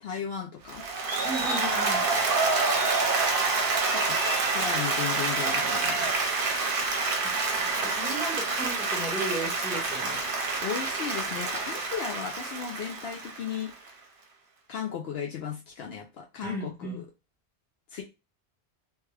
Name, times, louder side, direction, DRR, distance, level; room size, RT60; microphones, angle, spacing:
voice 1, 0.0-0.8 3.9-4.2 4.5-6.1 10.4-13.7 14.7-17.1 17.9-18.0, left 7 dB, 65° left, 1 dB, 0.8 m, -35 dB
Applause, 0.7-13.9, right 3 dB, 55° right, 0.9 m, -27 dB
voice 2, 1.2-2.1 7.4-10.3 16.4-17.0, right 1 dB, ahead, -2 dB, 1.1 m, -35 dB
3.1 x 2.2 x 3.2 m, 0.27 s
omnidirectional pair, 1.2 m